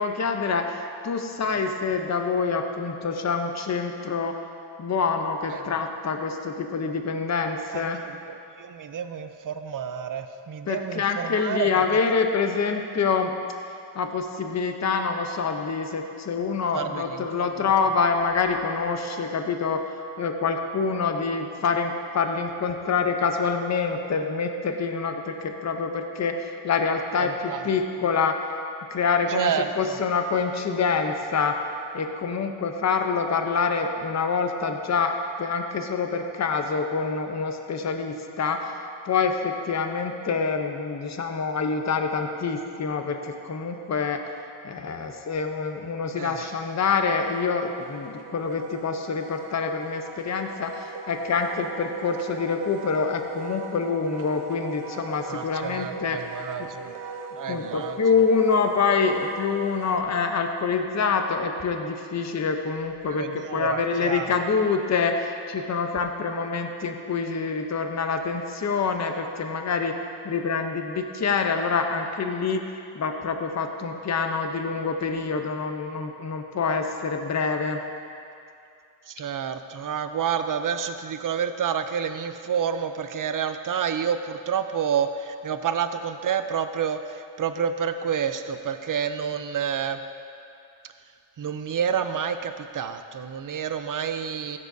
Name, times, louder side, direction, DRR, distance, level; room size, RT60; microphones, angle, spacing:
voice 1, 0.0-4.4 4.8-8.0 10.7-13.3 13.9-19.8 20.2-28.4 28.9-31.6 31.9-38.8 39.1-44.2 44.6-56.2 56.6-56.7 57.5-70.0 70.2-77.8, left 5 dB, 35° left, 5 dB, 0.7 m, -26 dB
voice 2, 8.1-11.8 16.7-17.7 27.2-27.6 29.3-30.0 46.2-46.5 55.3-56.9 57.4-58.0 63.1-64.3 79.1-90.0 91.4-94.6, right 7 dB, 40° right, 9 dB, 0.6 m, -29 dB
Wind instrument woodwind instrument, 45.6-60.0, right 3 dB, 70° right, 0.8 m, -39 dB
15.0 x 7.4 x 2.7 m, 2.5 s
cardioid pair, 90°, 49 cm